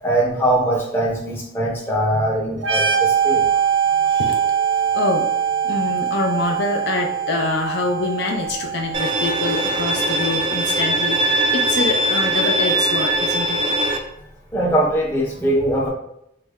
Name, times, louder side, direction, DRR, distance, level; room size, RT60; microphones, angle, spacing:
voice 1, 0.0-3.4 14.5-15.9, right 1 dB, 10° left, -3 dB, 0.6 m, -21 dB
sound 1, 2.6-10.1, right 8 dB, 90° right, 0.6 m, -22 dB
voice 2, 3.6-13.8, left 3 dB, 65° left, 3 dB, 0.4 m, -26 dB
Bowed string instrument, 8.9-14.0, right 1 dB, 25° right, 0.3 m, -21 dB
3.2 x 2.1 x 3.4 m, 0.77 s
head